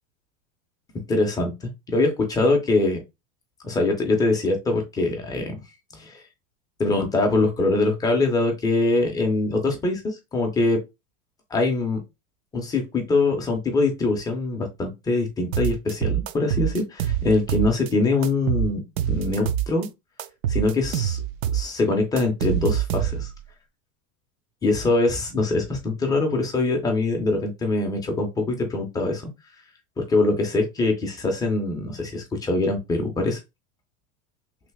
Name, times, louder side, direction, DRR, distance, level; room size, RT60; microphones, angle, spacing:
voice 1, 1.1-3.0 3.6-5.5 5.9-6.2 6.8-10.8 11.5-12.0 12.5-19.9 20.5-21.2 21.5-23.3 24.6-29.2 30.0-33.4, left 2 dB, 10° left, 2 dB, 0.3 m, -23 dB
sound 1, 15.5-17.9 18.2-19.9 20.2-23.4, right 10 dB, 70° right, 0.5 m, -26 dB
3.1 x 2.5 x 3.3 m, 0.23 s
supercardioid pair, 140°, 42 cm